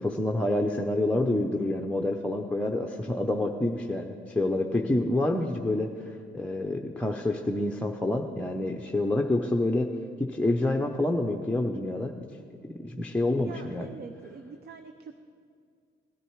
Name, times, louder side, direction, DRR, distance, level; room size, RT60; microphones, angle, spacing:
voice 1, 0.0-9.9 10.2-12.2 12.8-13.9, left 1 dB, 5° left, 1 dB, 0.7 m, -28 dB
voice 2, 13.4-15.1, right 5 dB, 55° right, 7 dB, 0.7 m, -44 dB
17.0 x 9.9 x 4.7 m, 2.2 s
cardioid pair, 90°, 20 cm